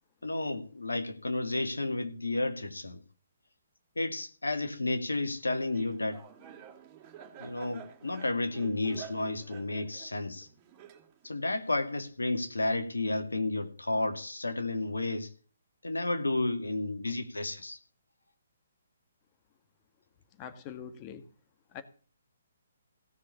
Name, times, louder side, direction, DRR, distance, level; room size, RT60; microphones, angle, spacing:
voice 1, 0.2-3.0 4.0-6.3 7.4-10.5 11.2-15.3 15.8-17.8, left 2 dB, 85° left, 2.5 m, -32 dB
Laughter, 5.5-11.4, right 8 dB, 25° right, 2.9 m, -50 dB
voice 2, 20.4-21.2 21.7-21.8, left 8 dB, 30° left, 1.7 m, -43 dB
16.5 x 6.5 x 7.0 m
figure-of-eight pair, 140°, 0 cm